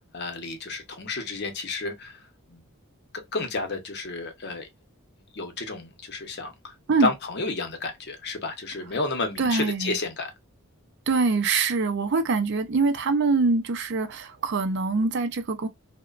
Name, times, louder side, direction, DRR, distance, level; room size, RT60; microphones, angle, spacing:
voice 1, 0.1-2.2 2.5-2.6 3.3-4.7 5.3-10.3, left 3 dB, 50° left, 0.7 m, -31 dB
voice 2, 9.4-10.0 11.1-15.7, right 4 dB, 55° right, 0.4 m, -24 dB
2.9 x 2.1 x 2.3 m
head